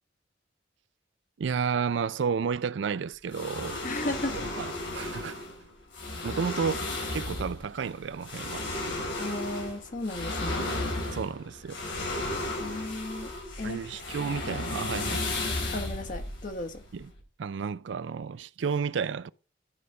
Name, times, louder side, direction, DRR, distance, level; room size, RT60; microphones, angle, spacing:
voice 1, 1.4-3.8 4.3-5.4 6.2-8.7 11.1-11.8 13.6-15.3 16.9-17.1 17.4-19.3, right 6 dB, 70° right, 0.4 m, -32 dB
sound 1, 3.3-17.2, left 2 dB, 85° left, 3.9 m, -34 dB
voice 2, 3.8-4.4 9.2-10.7 12.6-13.3 13.6-14.0 15.7-16.8, left 1 dB, 45° left, 1.3 m, -35 dB
11.5 x 5.0 x 5.4 m
head